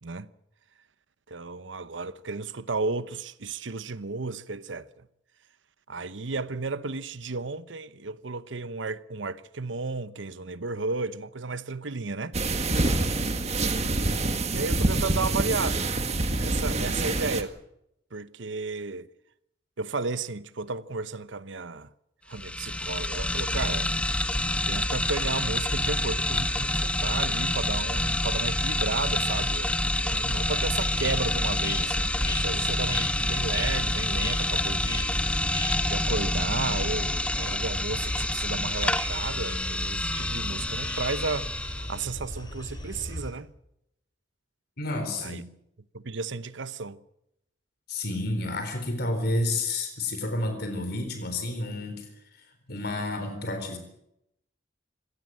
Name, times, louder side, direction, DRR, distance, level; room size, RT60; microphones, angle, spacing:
voice 1, 1.3-5.1 5.9-12.4 14.5-15.9 16.3-17.6 18.1-19.1 19.8-21.9 22.3-24.1 24.6-35.1 35.8-43.5 45.2-45.4 45.9-47.0, right 3 dB, 85° right, 1.0 m, -33 dB
sound 1, 12.3-17.4, right 2 dB, 35° right, 1.8 m, -26 dB
voice 2, 12.7-13.2 44.8-45.4 47.9-52.1 52.4-53.8, left 2 dB, 60° left, 4.1 m, -30 dB
sound 2, 22.3-42.0, left 1 dB, 5° left, 0.8 m, -27 dB
sound 3, 30.7-43.3, left 1 dB, 25° left, 4.3 m, -38 dB
25.5 x 17.5 x 7.6 m
head